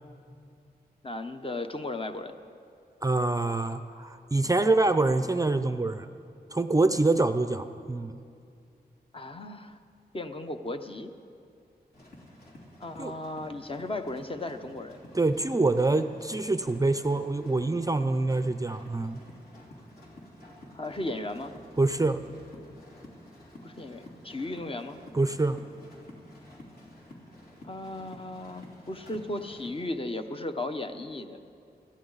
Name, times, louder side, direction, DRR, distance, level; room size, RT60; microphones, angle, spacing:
voice 1, 1.0-2.3 9.1-9.8 10.1-11.1 12.8-15.0 20.7-21.5 23.6-25.0 27.6-31.4, left 2 dB, 30° left, 7 dB, 0.9 m, -36 dB
voice 2, 3.0-6.1 6.5-8.2 13.0-13.1 15.1-19.2 21.8-22.2 25.1-25.6, right 2 dB, 20° right, 10 dB, 0.5 m, -25 dB
sound 1, 11.9-29.9, left 1 dB, 60° left, 3.4 m, -50 dB
22.0 x 14.5 x 4.0 m, 2.4 s
wide cardioid pair, 85°, 17 cm